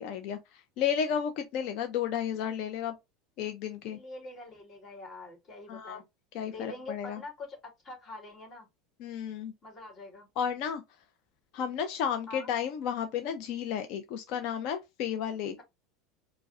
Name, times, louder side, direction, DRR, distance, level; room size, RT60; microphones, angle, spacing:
voice 1, 0.0-2.9 3.4-4.0 5.7-6.0 6.3-7.2 9.0-9.5 10.4-10.8 11.5-15.5, left 8 dB, 60° left, 0.6 m, -32 dB
voice 2, 3.9-6.1 6.4-8.7 9.6-10.3 12.3-12.5, left 2 dB, 40° left, 1.9 m, -45 dB
4.6 x 2.2 x 2.5 m
hypercardioid pair, 85°, 0 cm